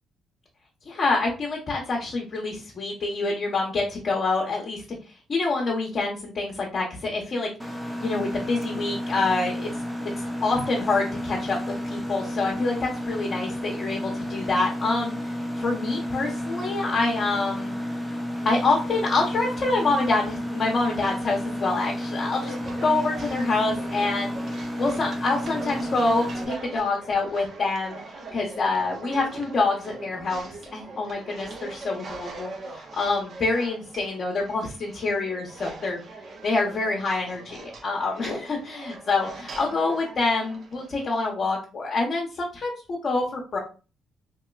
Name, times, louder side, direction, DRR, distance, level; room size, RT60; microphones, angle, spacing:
voice 1, 0.9-5.0 5.3-7.5 8.0-9.7 10.2-11.6 11.8-17.7 18.4-22.5 22.8-24.3 24.8-28.0 28.3-36.0 36.4-43.6, left 3 dB, 45° left, -2 dB, 0.8 m, -26 dB
Mechanisms, 7.6-26.4, equal, 10° right, 0.6 m, -31 dB
sound 1, 21.6-41.3, right 3 dB, 50° right, 0.7 m, -41 dB
3.0 x 2.8 x 2.3 m, 0.34 s
cardioid pair, 90°, 0 cm